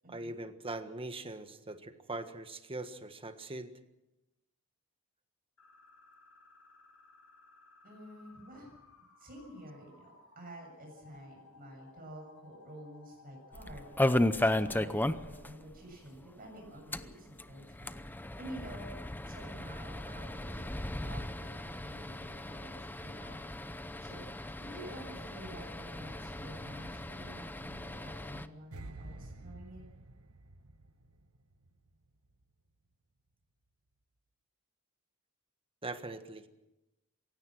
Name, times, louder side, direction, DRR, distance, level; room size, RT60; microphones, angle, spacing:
voice 1, 0.1-3.7 35.8-36.5, right 2 dB, 25° right, 9 dB, 1.5 m, -41 dB
sound 1, 5.6-15.2, left 4 dB, 85° left, 6.7 m, -59 dB
voice 2, 7.8-8.8 9.2-13.9 14.4-19.0 19.3-29.8, right 1 dB, 40° right, 0 dB, 7.3 m, -50 dB
sound 2, 13.5-15.5 15.8-15.9 16.1-16.2 16.8-28.5, left 1 dB, 10° left, 0.7 m, -35 dB
sound 3, 28.7-31.9 32.2-32.4, right 2 dB, 85° right, 1.3 m, -49 dB
28.0 x 16.5 x 6.2 m, 0.96 s
head